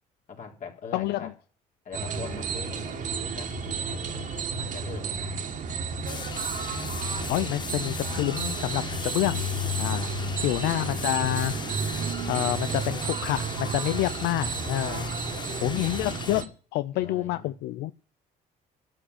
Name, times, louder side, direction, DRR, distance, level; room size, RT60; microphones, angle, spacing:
voice 1, 0.3-1.3 1.8-4.3 4.6-6.3 7.2-7.6 9.9-11.0 15.0-15.7 16.9-17.6, left 5 dB, 50° left, 1 dB, 4.0 m, -44 dB
voice 2, 0.9-1.3 7.3-9.5 9.8-10.1 10.4-11.5 12.3-15.1 15.6-17.9, left 15 dB, 85° left, 13 dB, 0.5 m, -28 dB
sound 1, 1.9-16.5, right 3 dB, 50° right, 2.2 m, -32 dB
sound 2, 6.1-16.4, left 6 dB, 25° left, 0.6 m, -39 dB
12.5 x 6.3 x 9.7 m, 0.40 s
cardioid pair, 110°, 17 cm